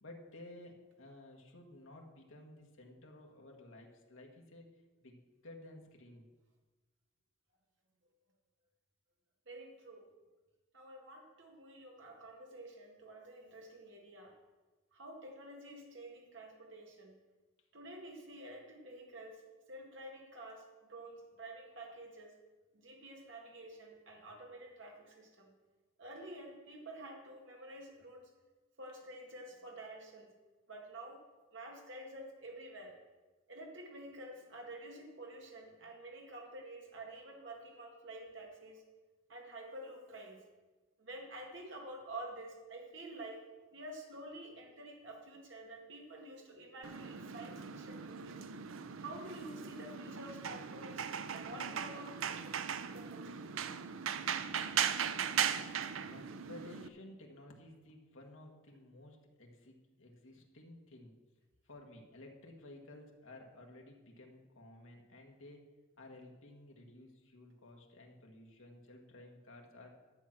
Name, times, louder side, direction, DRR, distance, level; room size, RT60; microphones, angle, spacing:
voice 1, 0.0-4.7 5.0-6.3 56.1-61.1 61.6-65.7 66.0-69.9, left 1 dB, 75° left, 1 dB, 1.6 m, -54 dB
voice 2, 9.5-10.0 10.7-14.3 14.9-17.2 17.7-19.4 19.7-22.3 22.7-25.5 26.0-28.3 28.8-30.3 30.7-31.2 31.5-32.9 33.5-38.8 39.3-40.4 41.0-43.4 43.7-48.4 49.0-53.3, right 1 dB, 60° right, 1 dB, 2.0 m, -49 dB
sound 1, 46.8-56.9, right 8 dB, 80° right, 0.6 m, -38 dB
11.5 x 7.5 x 5.9 m, 1.2 s
head